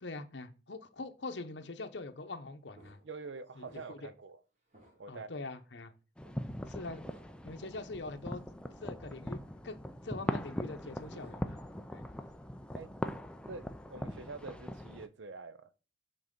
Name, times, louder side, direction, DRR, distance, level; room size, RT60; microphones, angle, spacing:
voice 1, 0.0-3.0 3.6-4.1 5.1-5.9 6.7-7.0 7.4-8.4 8.8-11.6 11.9-12.0, left 3 dB, 70° left, 0.8 m, -43 dB
sound 1, 2.7-4.2 4.7-5.3 6.2-6.4 7.0-7.5 8.0-8.1 10.8-11.7 12.0-12.4, right 2 dB, 40° right, 1.9 m, -61 dB
voice 2, 3.0-4.4 5.0-5.3 12.7-12.9 13.5-15.7, right 4 dB, 85° right, 0.7 m, -46 dB
sound 2, 6.2-15.1, equal, 5° left, 0.4 m, -41 dB
6.1 x 4.1 x 5.1 m
head